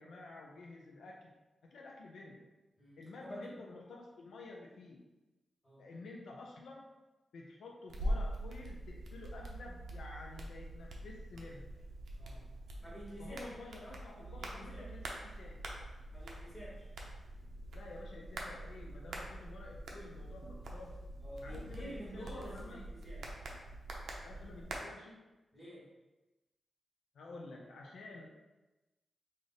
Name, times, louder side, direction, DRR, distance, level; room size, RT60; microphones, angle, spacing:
voice 1, 0.0-1.3 1.6-2.5 3.0-5.0 5.8-6.9 7.3-11.7 13.2-15.6 17.7-21.1 21.4-22.9 24.2-25.2 27.1-28.3, left 2 dB, 85° left, -1 dB, 0.5 m, -51 dB
voice 2, 2.8-3.6 5.6-5.8 12.2-12.5 12.8-14.9 16.1-16.9 21.2-23.4 25.5-25.9, equal, 20° left, -7 dB, 1.4 m, -49 dB
sound 1, 7.9-24.8, right 1 dB, 75° right, 0.6 m, -44 dB
3.2 x 2.5 x 4.0 m, 1.1 s
wide cardioid pair, 150°, 0 cm